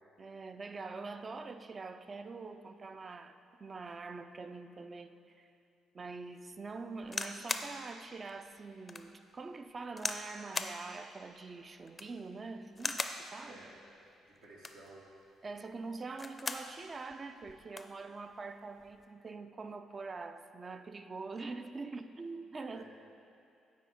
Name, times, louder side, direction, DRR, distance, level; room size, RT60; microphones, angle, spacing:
voice 1, 0.2-5.5 5.9-13.6 15.4-22.9, right 3 dB, 40° right, 9 dB, 0.3 m, -44 dB
sound 1, 7.0-7.7 8.3-8.4 8.9-9.1 10.0-10.3 10.5-10.8 11.8-12.2 12.8-13.2 14.4-14.9 16.0-16.7 17.1-17.2 17.4-17.9 18.8-19.0, left 3 dB, 30° left, 0.4 m, -38 dB
voice 2, 13.4-13.8 14.2-15.1 22.7-22.9, right 2 dB, 75° right, -4 dB, 1.3 m, -54 dB
8.9 x 4.3 x 3.5 m, 2.6 s
hypercardioid pair, 50°, 0 cm